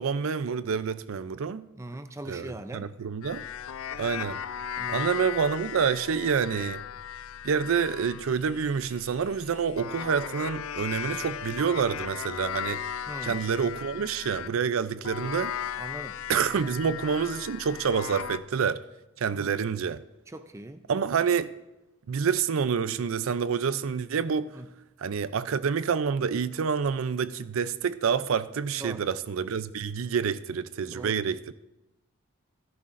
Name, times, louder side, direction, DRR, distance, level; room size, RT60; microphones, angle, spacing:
voice 1, 0.0-1.6 2.3-3.4 3.9-4.4 4.9-6.8 7.4-12.8 13.2-15.5 16.3-18.8 19.2-20.0 20.9-21.5 22.1-24.5 25.0-31.5, right 6 dB, 75° right, 0.4 m, -28 dB
voice 2, 1.8-2.9 4.8-5.1 13.1-13.4 15.0-15.1 15.8-16.2 16.6-16.7 19.3-19.6 20.3-20.8 24.5-24.7 28.8-29.0 30.9-31.2, right 1 dB, 15° right, 0.4 m, -40 dB
sound 1, 3.2-14.6 15.1-18.4, left 9 dB, 80° left, 0.4 m, -37 dB
17.0 x 11.0 x 2.5 m
head